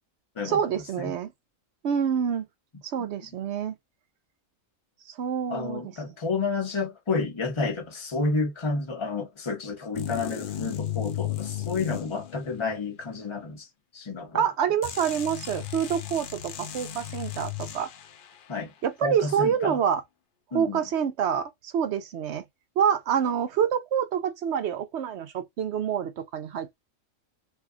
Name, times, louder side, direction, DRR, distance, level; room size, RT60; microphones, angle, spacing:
voice 1, 0.4-1.3 1.8-2.5 2.8-3.8 5.1-5.8 14.3-17.9 18.8-20.0 20.5-22.4 22.8-26.8, right 8 dB, 65° right, 0.8 m, -27 dB
voice 2, 5.5-13.7 13.9-14.4 18.5-18.7 19.0-19.8 20.5-20.8, left 3 dB, 25° left, 0.9 m, -30 dB
sound 1, 9.9-12.8 14.8-18.3, left 10 dB, 65° left, 0.5 m, -35 dB
2.7 x 2.3 x 3.7 m
omnidirectional pair, 1.4 m